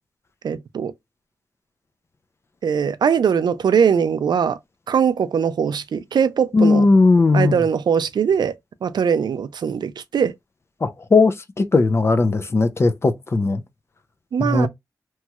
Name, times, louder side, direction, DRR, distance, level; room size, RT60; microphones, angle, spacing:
voice 1, 0.4-0.9 2.6-4.6 4.9-6.9 7.3-8.6 8.8-10.3 14.3-14.7, right 7 dB, 85° right, 0.4 m, -21 dB
voice 2, 6.5-7.6 10.8-13.6 14.4-14.7, left 3 dB, 35° left, 0.4 m, -17 dB
3.0 x 2.3 x 2.8 m
wide cardioid pair, 115°, 7 cm